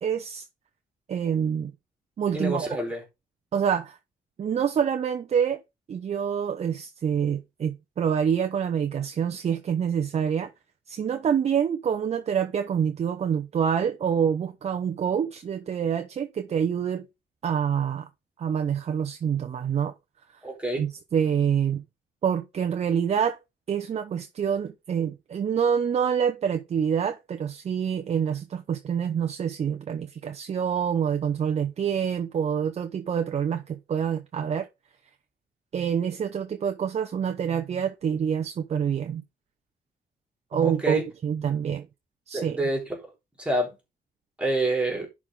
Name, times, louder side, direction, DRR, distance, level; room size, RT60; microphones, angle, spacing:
voice 1, 0.0-0.4 1.1-1.7 2.2-2.8 3.5-4.0 4.4-5.6 5.9-10.5 10.9-17.1 17.4-18.1 18.4-19.9 20.8-21.8 22.2-23.4 23.7-34.7 35.7-39.2 40.5-41.9 42.3-42.6, right 8 dB, 45° right, 0.7 m, -26 dB
voice 2, 2.3-3.0 20.4-20.9 40.6-41.0 42.3-42.8 43.4-43.8 44.4-45.1, right 1 dB, 5° right, 3.7 m, -27 dB
10.5 x 4.8 x 3.7 m
cardioid pair, 130°, 16 cm